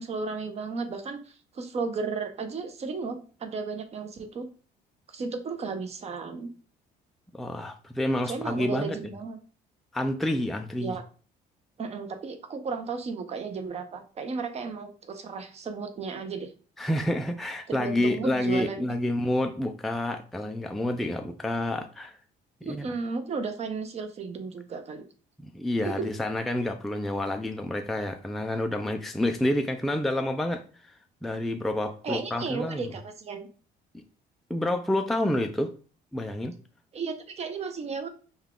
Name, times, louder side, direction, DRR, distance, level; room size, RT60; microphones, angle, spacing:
voice 1, 0.0-4.5 5.1-6.5 8.3-9.4 10.8-11.0 11.8-16.5 17.7-18.8 22.6-25.0 25.8-26.1 32.0-33.5 36.9-38.1, right 4 dB, 40° right, 0.8 m, -34 dB
voice 2, 7.3-9.0 9.9-10.9 16.8-22.2 22.6-22.9 25.4-30.6 31.2-32.9 34.5-35.7 36.1-36.5, left 1 dB, ahead, 0.4 m, -28 dB
5.4 x 2.3 x 3.7 m
cardioid pair, 110°, 17 cm